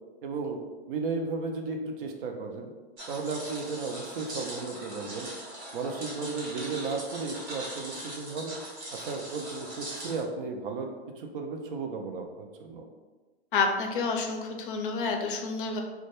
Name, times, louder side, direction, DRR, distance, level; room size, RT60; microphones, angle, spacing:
voice 1, 0.2-0.6 0.9-2.7 3.1-5.3 5.7-8.5 8.9-10.9 11.2-12.9, right 4 dB, 55° right, 4 dB, 0.4 m, -34 dB
sound 1, 3.0-10.2, right 1 dB, 80° right, 1.1 m, -41 dB
voice 2, 13.5-15.8, left 4 dB, 50° left, 3 dB, 0.5 m, -29 dB
2.2 x 2.1 x 3.0 m, 1.2 s
figure-of-eight pair, 105°, 33 cm